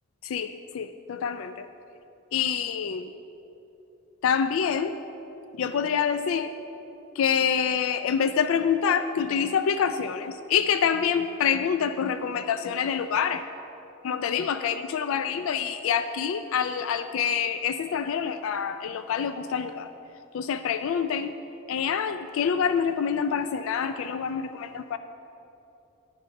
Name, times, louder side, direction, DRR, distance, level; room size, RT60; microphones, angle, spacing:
voice 1, 0.2-1.7 2.3-3.1 4.2-5.0 5.5-6.5 7.2-13.4 14.0-19.9 20.3-21.4 21.7-25.0, left 7 dB, 75° left, 10 dB, 0.3 m, -26 dB
11.0 x 6.5 x 5.1 m, 3.0 s
head